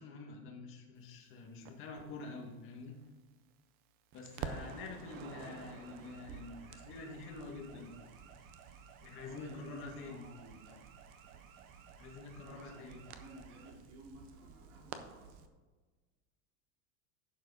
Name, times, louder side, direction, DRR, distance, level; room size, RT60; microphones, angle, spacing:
voice 1, 0.0-2.9 4.1-8.0 9.0-10.2 12.0-13.0, left 3 dB, 30° left, 0 dB, 1.9 m, -47 dB
Crackle, 1.6-3.8 4.1-15.5, right 7 dB, 25° right, 0.4 m, -51 dB
sound 1, 5.1-13.7, right 7 dB, 75° right, 1.5 m, -60 dB
voice 2, 9.2-10.9 12.4-15.5, right 1 dB, 55° right, -2 dB, 3.4 m, -54 dB
11.0 x 6.9 x 3.9 m, 1.3 s
supercardioid pair, 165°, 41 cm